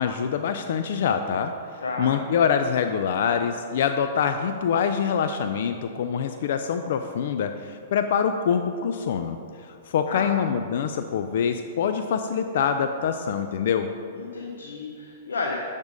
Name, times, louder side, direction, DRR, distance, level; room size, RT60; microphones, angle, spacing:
voice 1, 0.0-9.4 9.9-13.9, left 7 dB, 65° left, 8 dB, 0.3 m, -25 dB
voice 2, 1.8-2.2 10.1-10.4 14.1-15.6, left 3 dB, 85° left, 0 dB, 0.7 m, -32 dB
8.0 x 3.5 x 5.1 m, 2.3 s
hypercardioid pair, 120°, 0 cm